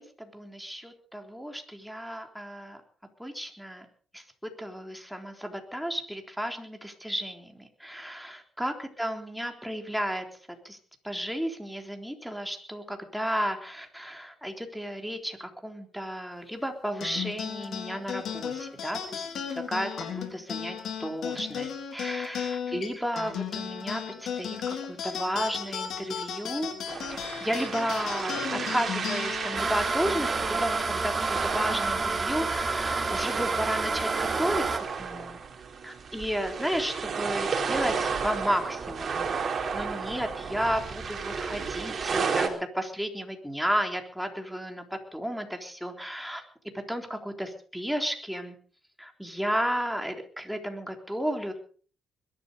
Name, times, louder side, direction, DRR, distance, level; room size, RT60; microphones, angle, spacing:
voice 1, 0.0-2.8 3.2-3.9 4.1-10.2 10.6-10.8 11.0-19.3 19.5-20.1 20.3-26.7 27.1-34.6 35.0-35.4 35.8-46.4 46.9-48.6 49.0-51.5, equal, ahead, 4 dB, 3.7 m, -33 dB
sound 1, 17.0-31.7, left 7 dB, 70° left, 3.5 m, -35 dB
sound 2, 26.9-42.5, right 5 dB, 50° right, 3.7 m, -33 dB
sound 3, 29.6-34.8, right 3 dB, 30° right, 2.7 m, -29 dB
21.5 x 12.5 x 5.2 m, 0.44 s
cardioid pair, 90°, 0 cm